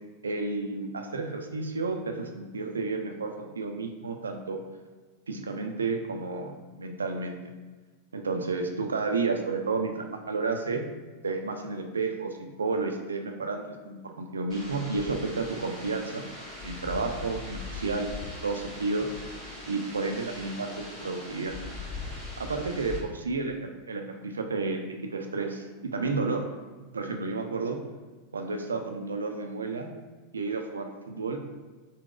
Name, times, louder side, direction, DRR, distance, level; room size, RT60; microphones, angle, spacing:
voice 1, 0.2-4.6 5.3-7.4 8.1-10.8 11.2-16.2 16.6-18.1 18.4-19.1 19.7-21.6 22.4-23.6 23.9-24.8 25.1-26.5 26.9-27.8 28.3-29.9 30.3-31.4, right 3 dB, 75° right, 4 dB, 0.3 m, -31 dB
sound 1, 14.5-23.0, left 2 dB, 25° left, 1.3 m, -40 dB
3.8 x 2.0 x 2.4 m, 1.3 s
figure-of-eight pair, 90°, 0 cm